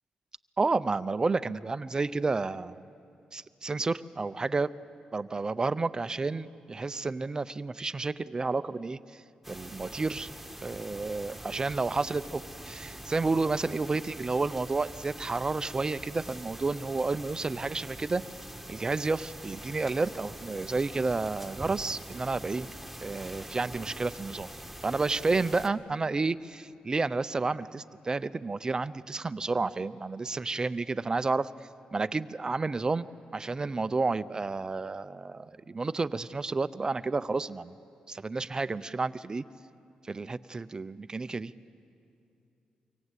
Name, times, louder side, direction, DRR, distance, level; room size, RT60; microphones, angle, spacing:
voice 1, 0.6-2.8 3.3-4.7 5.1-9.2 9.5-10.3 10.6-18.2 18.7-22.7 23.0-24.5 24.8-31.5 31.9-33.1 33.3-37.7 38.1-39.4 40.1-41.5, right 3 dB, 30° right, 14 dB, 0.6 m, -31 dB
sound 1, 9.4-25.7, right 1 dB, ahead, 1.8 m, -44 dB
25.0 x 24.5 x 8.2 m, 2.6 s
cardioid pair, 75°, 2 cm